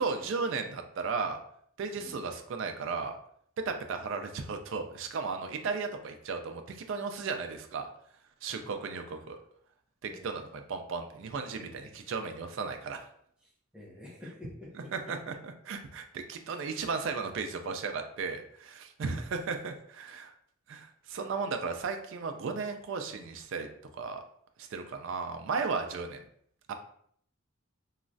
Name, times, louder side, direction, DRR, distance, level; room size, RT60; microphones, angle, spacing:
voice 1, 0.0-1.4 1.8-3.2 3.7-7.9 8.4-9.4 10.0-13.1 14.8-20.3 20.7-23.7 23.9-24.2 24.6-26.2 26.7-26.8, right 4 dB, 65° right, 6 dB, 0.3 m, -35 dB
voice 2, 10.1-10.5 11.5-12.0 13.7-15.2, left 2 dB, 5° right, -4 dB, 0.6 m, -49 dB
3.0 x 2.3 x 2.5 m, 0.65 s
head